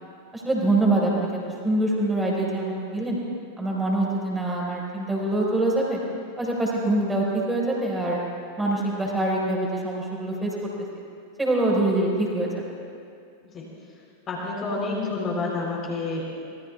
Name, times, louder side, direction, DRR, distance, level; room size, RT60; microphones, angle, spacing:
voice 1, 0.3-1.4 1.6-3.2 3.6-6.0 6.4-8.2 8.6-10.6 11.4-12.6, right 2 dB, 10° right, -4 dB, 4.7 m, -24 dB
voice 2, 14.3-16.2, left 3 dB, 25° left, -3 dB, 3.6 m, -28 dB
25.0 x 20.0 x 2.4 m, 2.4 s
figure-of-eight pair, 90°, 0 cm